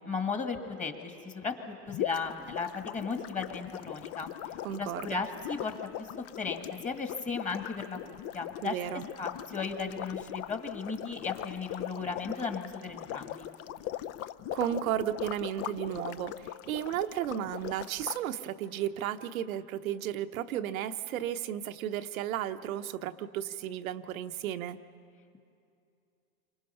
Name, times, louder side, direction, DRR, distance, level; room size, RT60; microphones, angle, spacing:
voice 1, 0.0-4.3 4.8-8.8 9.2-13.5, left 4 dB, 15° left, 5 dB, 1.8 m, -36 dB
sound 1, 1.9-18.2, left 12 dB, 35° left, 0.5 m, -40 dB
voice 2, 4.6-5.2 8.6-9.1 14.5-24.8, right 11 dB, 85° right, 10 dB, 1.0 m, -34 dB
28.5 x 25.0 x 5.6 m, 2.6 s
supercardioid pair, 120°, 41 cm